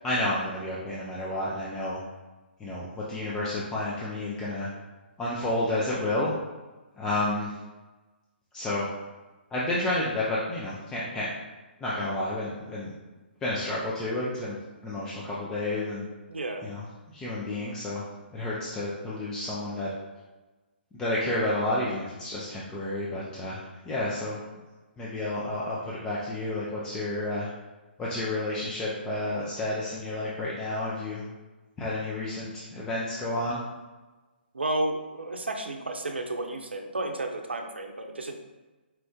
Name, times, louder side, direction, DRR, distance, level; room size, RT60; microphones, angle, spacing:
voice 1, 0.0-2.0 2.6-4.7 5.2-6.3 6.9-7.6 8.5-8.9 9.5-11.3 11.8-12.9 13.4-14.6 14.8-16.0 16.6-16.8 17.1-18.0 18.3-19.9 20.9-24.4 25.0-27.5 28.0-31.2 31.8-33.8, left 1 dB, 10° left, -7 dB, 0.5 m, -30 dB
voice 2, 16.3-16.6 34.5-38.4, right 2 dB, 70° right, 4 dB, 0.6 m, -32 dB
4.4 x 2.5 x 3.6 m, 1.2 s
figure-of-eight pair, 130°, 6 cm